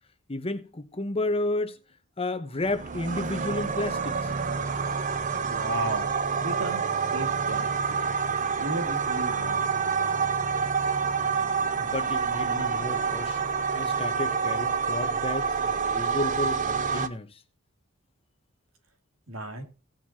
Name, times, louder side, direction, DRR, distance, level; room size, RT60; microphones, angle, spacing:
voice 1, 0.3-1.8 2.2-4.2 11.8-13.4 13.7-17.3, left 2 dB, 30° left, 1.0 m, -32 dB
sound 1, 2.6-17.1, right 5 dB, 40° right, 0.7 m, -27 dB
voice 2, 5.5-6.1 6.4-8.0 8.6-9.9 19.3-19.6, right 1 dB, 85° right, 2.3 m, -34 dB
18.0 x 7.3 x 2.8 m
head